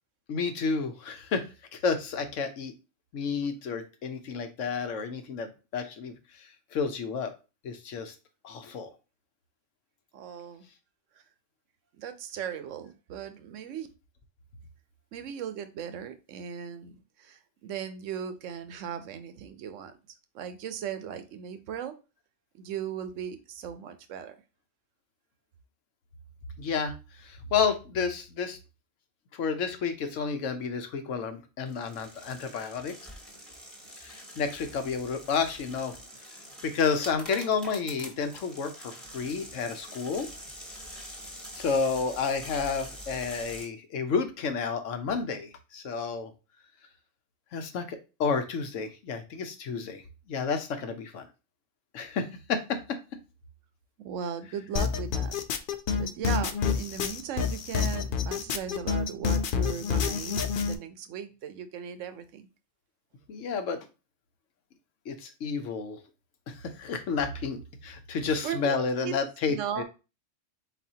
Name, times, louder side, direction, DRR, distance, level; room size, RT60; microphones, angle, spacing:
voice 1, 0.3-2.7 3.1-6.5 6.7-7.3 7.6-8.1 8.4-8.9 26.6-28.6 29.3-32.9 34.0-36.0 36.6-40.3 40.9-41.2 41.5-46.3 47.5-50.0 50.3-51.3 51.9-52.8 63.3-63.8 65.1-66.0 66.5-69.8, left 5 dB, 85° left, 7 dB, 1.1 m, -31 dB
voice 2, 10.1-10.7 11.1-11.2 12.0-13.9 15.1-20.0 20.3-22.0 22.5-24.4 54.0-55.4 56.0-62.5 68.4-69.2 69.5-69.8, right 8 dB, 80° right, 10 dB, 1.0 m, -37 dB
sound 1, 31.7-43.7, equal, ahead, 0.9 m, -45 dB
sound 2, 54.7-60.7, left 6 dB, 60° left, 0.6 m, -28 dB
4.3 x 4.1 x 2.7 m, 0.30 s
omnidirectional pair, 1.3 m